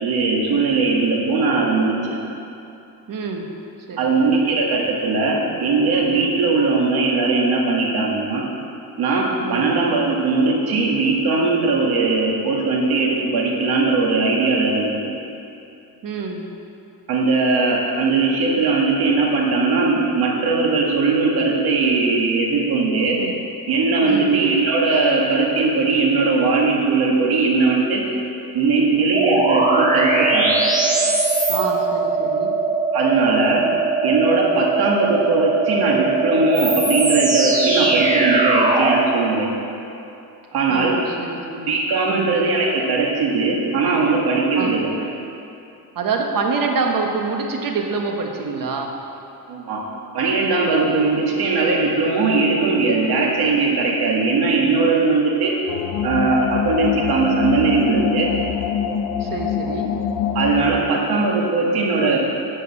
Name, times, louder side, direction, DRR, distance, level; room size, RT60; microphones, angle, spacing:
voice 1, 0.0-1.9 4.0-8.4 9.0-15.1 17.1-23.2 23.7-28.0 28.5-30.5 32.9-33.6 34.0-39.5 40.5-41.0 41.7-44.9 49.5-49.8 50.1-55.5 56.0-58.3 60.3-62.2, right 3 dB, 80° right, -2 dB, 2.0 m, -19 dB
voice 2, 3.1-3.5 3.9-4.1 9.4-9.7 16.0-16.4 23.2-23.3 24.0-24.4 31.5-32.5 40.7-41.7 42.1-42.3 44.5-44.7 45.9-48.9 59.2-59.9, right 4 dB, 60° right, 2 dB, 1.4 m, -26 dB
sound 1, 29.1-39.1, right 3 dB, 20° right, 1.5 m, -20 dB
sound 2, 55.7-60.9, left 7 dB, 90° left, 0.6 m, -24 dB
10.5 x 5.4 x 7.6 m, 2.7 s
cardioid pair, 130°, 38 cm